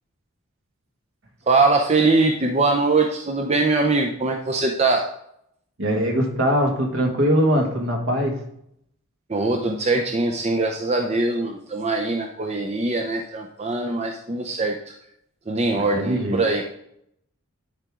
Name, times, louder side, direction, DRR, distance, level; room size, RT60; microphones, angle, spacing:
voice 1, 1.5-5.1 9.3-14.8 15.5-16.7, right 3 dB, 30° right, 3 dB, 0.6 m, -22 dB
voice 2, 5.8-8.4 15.8-16.4, equal, 65° right, 1 dB, 1.9 m, -22 dB
10.5 x 4.9 x 3.7 m, 0.74 s
head